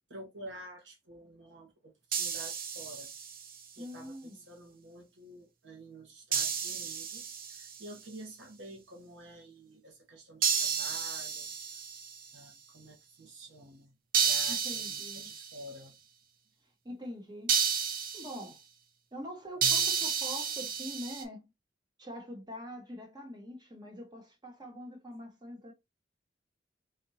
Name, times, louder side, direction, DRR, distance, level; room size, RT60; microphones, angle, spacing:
voice 1, 0.1-3.1 3.8-11.5 12.3-13.9 14.2-15.9, right 1 dB, 85° right, 1.1 m, -50 dB
sound 1, 2.1-3.6 6.3-7.9 10.4-12.3 14.1-15.6 17.5-18.4 19.6-21.2, right 6 dB, 50° right, 0.6 m, -31 dB
voice 2, 3.8-4.4 14.5-15.3 16.8-17.6 18.1-18.6 19.1-21.5 22.0-25.7, equal, 25° right, 1.0 m, -44 dB
3.8 x 2.5 x 2.7 m
head